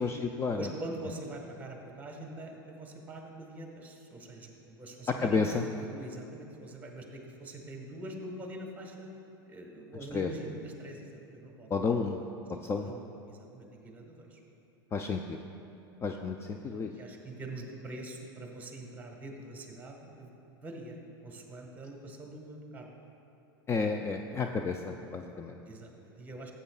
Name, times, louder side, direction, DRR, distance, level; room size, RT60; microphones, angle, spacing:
voice 1, 0.0-0.7 5.1-5.6 10.1-10.3 11.7-12.2 12.5-12.9 14.9-15.4 16.0-16.9 23.7-25.6, left 4 dB, 20° left, 4 dB, 0.4 m, -31 dB
voice 2, 0.6-5.4 5.9-9.1 9.5-11.7 12.8-14.4 17.0-20.3 20.6-21.0 21.2-22.9 25.7-26.5, right 1 dB, 15° right, 1 dB, 1.4 m, -44 dB
13.0 x 8.3 x 2.4 m, 3.0 s
hypercardioid pair, 105°, 12 cm